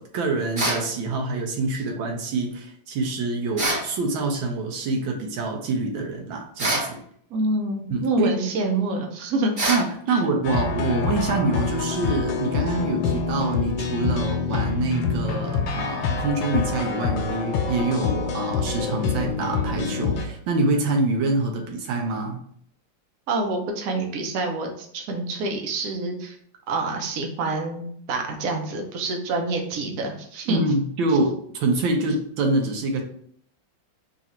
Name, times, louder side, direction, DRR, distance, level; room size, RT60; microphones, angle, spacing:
voice 1, 0.0-7.0 7.9-8.3 9.7-22.4 30.5-33.0, right 3 dB, 85° right, 2 dB, 1.6 m, -26 dB
sound 1, 0.6-0.9 3.6-3.9 6.6-6.9 9.6-9.9, right 2 dB, 35° right, 1.1 m, -24 dB
voice 2, 7.3-9.5 10.1-10.2 23.3-26.4 26.7-30.6, right 2 dB, 60° right, 2 dB, 1.1 m, -27 dB
sound 2, 10.4-20.3, left 5 dB, 85° left, 1.4 m, -26 dB
3.9 x 2.5 x 4.2 m, 0.62 s
omnidirectional pair, 2.1 m